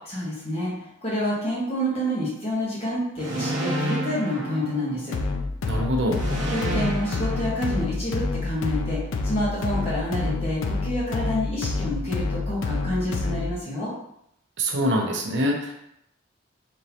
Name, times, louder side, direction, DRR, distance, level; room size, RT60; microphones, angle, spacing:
voice 1, 0.1-0.7 1.0-5.2 6.5-13.9, equal, 30° left, -7 dB, 1.3 m, -28 dB
sound 1, 3.2-5.4 6.1-8.3, equal, 85° right, 1.0 m, -30 dB
sound 2, 5.1-13.6, left 3 dB, 85° left, 0.4 m, -28 dB
voice 2, 5.6-6.2 14.6-15.7, equal, 65° right, 1 dB, 0.7 m, -24 dB
4.3 x 3.0 x 2.8 m, 0.77 s
head